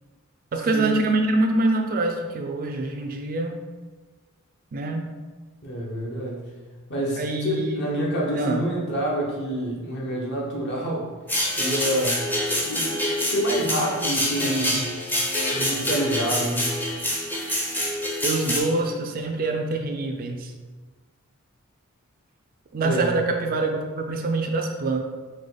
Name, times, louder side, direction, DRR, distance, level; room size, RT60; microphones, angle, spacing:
voice 1, 0.5-3.6 4.7-5.1 7.2-7.8 8.3-8.7 14.4-14.8 18.2-20.5 22.7-25.0, right 2 dB, 40° right, 4 dB, 0.4 m, -25 dB
voice 2, 5.6-6.5 6.9-11.1 11.6-12.3 12.6-12.9 13.2-14.8 15.5-16.7 22.8-23.1, right 1 dB, 50° left, -3 dB, 1.0 m, -27 dB
sound 1, 11.3-18.6, left 1 dB, 10° left, 0.6 m, -26 dB
4.8 x 2.2 x 3.9 m, 1.3 s
head